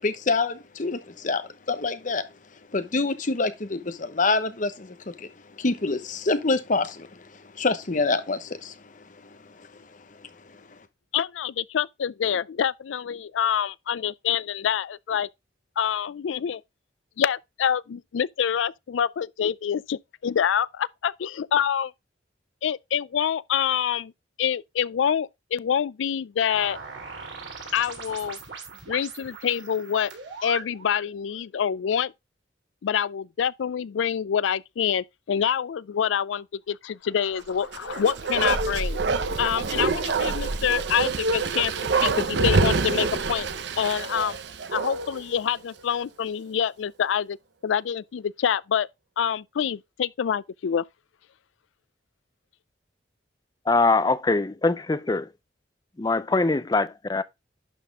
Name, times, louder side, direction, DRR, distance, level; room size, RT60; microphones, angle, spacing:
voice 1, 0.0-1.4 1.7-2.2 2.7-5.3 5.6-7.3 7.5-9.0 9.6-9.7, left 3 dB, 45° left, 0.9 m, -26 dB
voice 2, 11.1-15.3 15.8-16.6 17.2-21.9 22.6-24.1 24.4-26.8 27.7-28.4 28.9-30.1 30.4-32.1 32.8-39.0 39.4-41.7 42.0-43.5 43.8-44.4 44.7-47.4 47.6-48.9 49.2-50.8, left 8 dB, 90° left, 0.4 m, -26 dB
sound 1, 26.5-31.1, right 5 dB, 85° right, 3.1 m, -40 dB
Bark, 37.7-45.2 45.6-45.7, right 4 dB, 65° right, 0.7 m, -26 dB
voice 3, 53.7-55.3 56.0-57.2, left 3 dB, 20° left, 0.5 m, -23 dB
11.0 x 4.2 x 3.5 m
head